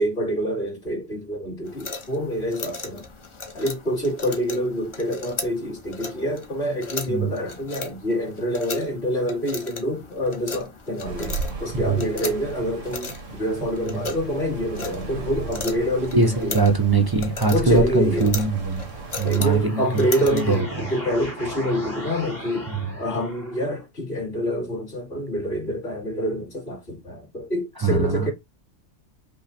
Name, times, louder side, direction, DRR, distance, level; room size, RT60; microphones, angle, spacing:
voice 1, 0.0-3.1 3.5-16.6 17.5-18.3 19.2-22.7 22.9-28.3, equal, 55° left, 2.6 m, -26 dB
sound 1, 1.7-20.6, left 4 dB, 30° left, 0.6 m, -37 dB
voice 2, 7.1-7.4 11.7-12.0 13.8-14.1 16.1-18.8 19.2-20.0 20.3-20.8 22.7-23.0 27.8-28.3, right 3 dB, 25° right, 0.5 m, -22 dB
sound 2, 11.0-19.7, right 4 dB, 80° right, 1.5 m, -35 dB
sound 3, 18.9-23.9, equal, 85° left, 2.7 m, -37 dB
5.5 x 2.1 x 4.2 m
omnidirectional pair, 1.3 m